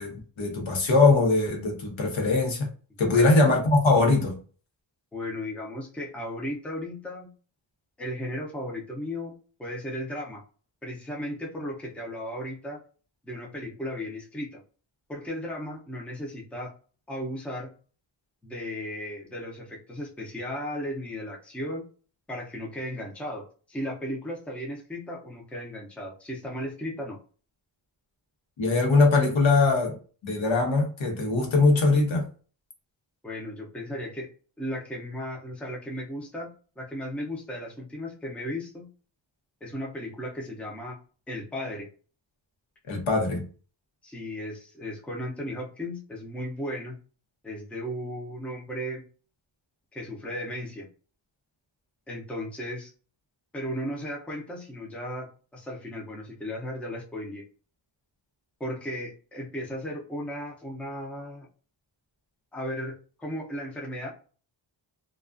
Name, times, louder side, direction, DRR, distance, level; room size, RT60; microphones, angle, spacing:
voice 1, 0.0-2.7 3.0-4.4 28.6-30.0 30.2-32.3 42.9-43.4, left 3 dB, 85° left, 0.9 m, -21 dB
voice 2, 5.1-7.3 8.0-9.3 9.6-10.4 10.8-12.8 13.2-14.6 15.1-16.7 17.1-17.7 18.4-21.8 22.3-27.2 33.2-34.3 34.6-38.9 39.6-41.0 41.3-41.9 44.0-47.0 47.4-49.0 49.9-50.9 52.1-52.9 53.5-57.4 58.6-61.5 62.5-64.1, equal, 5° left, 0.4 m, -35 dB
2.3 x 2.2 x 2.4 m
wide cardioid pair, 155°, 46 cm